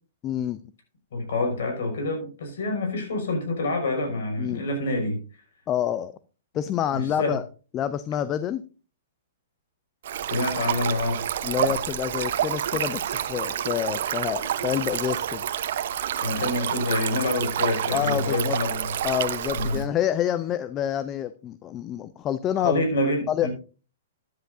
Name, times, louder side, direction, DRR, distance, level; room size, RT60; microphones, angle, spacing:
voice 1, 0.2-0.6 4.4-4.6 5.7-6.1 6.5-7.4 7.7-8.6 11.4-15.4 17.9-18.6 19.0-22.8 23.3-23.5, left 10 dB, 25° left, 14 dB, 0.6 m, -27 dB
voice 2, 1.1-5.2 6.9-7.4 10.2-11.2 11.6-11.7 16.2-18.9 19.5-19.8 22.6-23.5, left 2 dB, 70° left, 3 dB, 5.8 m, -27 dB
Stream, 10.0-19.8, right 10 dB, 65° right, 1.0 m, -28 dB
14.0 x 10.5 x 2.7 m, 0.36 s
hypercardioid pair, 125°, 0 cm